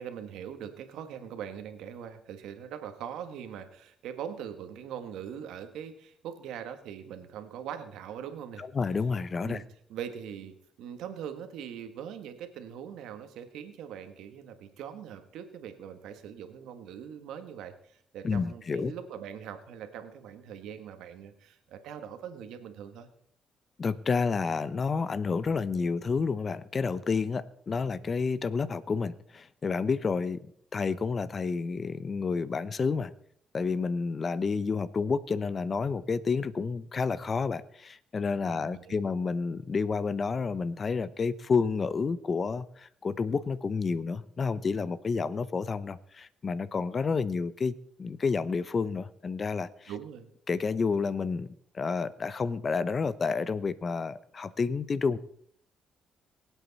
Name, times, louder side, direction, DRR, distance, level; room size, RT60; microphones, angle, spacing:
voice 1, 0.0-8.6 9.4-9.6 9.9-23.1 38.4-39.1 49.9-50.3, right 8 dB, 85° right, 8 dB, 1.5 m, -42 dB
voice 2, 8.6-9.6 18.2-18.9 23.8-30.5 30.7-33.1 33.5-49.9 50.5-55.2, left 5 dB, 40° left, 17 dB, 0.7 m, -30 dB
22.5 x 8.2 x 4.1 m, 0.64 s
cardioid pair, 90°, 0 cm